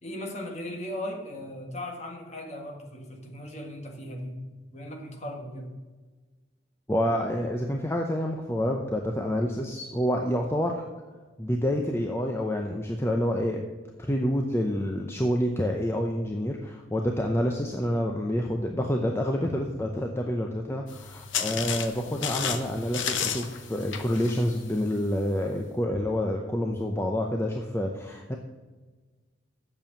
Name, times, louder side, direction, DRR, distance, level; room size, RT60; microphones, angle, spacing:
voice 1, 0.0-5.7, left 1 dB, 35° left, 2 dB, 1.6 m, -38 dB
voice 2, 6.9-10.9 11.4-13.7 14.0-28.4, equal, 10° left, 2 dB, 0.6 m, -28 dB
sound 1, 20.9-25.2, left 7 dB, 75° left, 0.9 m, -33 dB
8.3 x 7.0 x 7.2 m, 1.3 s
head